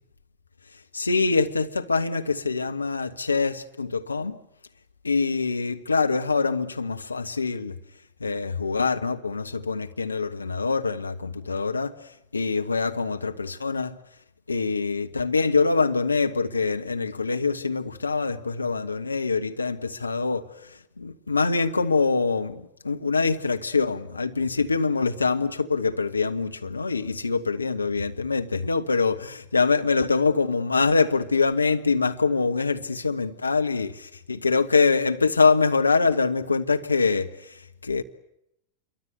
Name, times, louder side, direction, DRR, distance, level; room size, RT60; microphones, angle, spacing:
voice 1, 0.9-4.4 5.0-7.8 8.2-11.9 12.3-14.0 14.5-38.0, left 4 dB, 80° left, 1.5 m, -24 dB
28.0 x 24.0 x 8.1 m
figure-of-eight pair, 90°, 0 cm